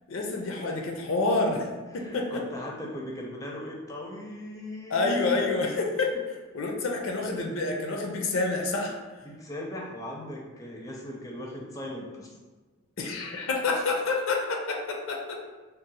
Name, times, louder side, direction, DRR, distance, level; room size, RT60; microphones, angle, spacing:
voice 1, 0.1-1.7 1.9-2.4 4.9-6.1 6.5-9.0 13.0-15.4, left 3 dB, 75° left, 1 dB, 0.5 m, -28 dB
voice 2, 1.9-5.1 9.2-12.3, left 1 dB, 15° left, -1 dB, 0.4 m, -39 dB
2.6 x 2.1 x 4.0 m, 1.3 s
head